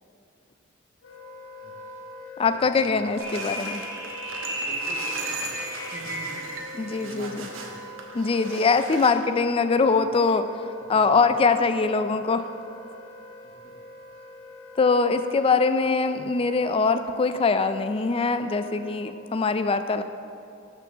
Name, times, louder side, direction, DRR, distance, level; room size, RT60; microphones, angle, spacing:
Wind instrument woodwind instrument, 1.0-19.2, left 1 dB, 70° left, 1.1 m, -44 dB
voice 1, 1.6-3.0 4.5-7.8 9.9-10.0 10.8-11.3 13.4-13.7, right 1 dB, 35° right, 1 dB, 1.1 m, -46 dB
voice 2, 2.4-3.8 6.8-7.5 8.1-10.5 10.9-12.5 14.8-20.0, left 4 dB, 25° left, 10 dB, 0.3 m, -22 dB
sound 1, 3.1-9.1, right 4 dB, 70° right, 1.0 m, -39 dB
sound 2, 3.2-6.7, equal, 15° right, 2.1 m, -33 dB
6.4 x 6.2 x 6.6 m, 2.6 s
head